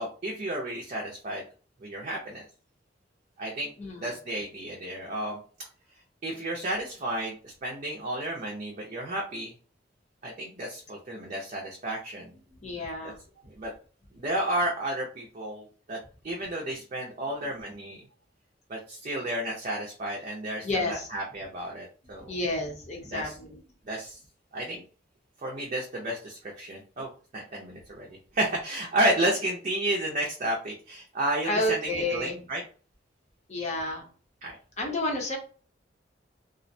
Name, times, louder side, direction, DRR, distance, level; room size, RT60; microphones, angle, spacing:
voice 1, 0.0-1.4 1.8-2.4 3.4-3.7 4.0-5.4 6.2-9.5 10.2-12.4 13.0-13.1 13.6-13.7 14.1-16.0 16.2-18.0 18.7-22.4 23.1-23.3 23.9-24.2 24.5-24.8 25.4-28.1 28.3-32.6 34.4-34.6, right 1 dB, 40° right, -2 dB, 0.5 m, -32 dB
voice 2, 3.8-4.1 12.5-13.2 20.6-21.1 22.2-23.6 31.4-32.4 33.5-34.1 34.8-35.4, left 1 dB, 40° left, 1 dB, 0.7 m, -30 dB
2.4 x 2.1 x 2.6 m, 0.40 s
head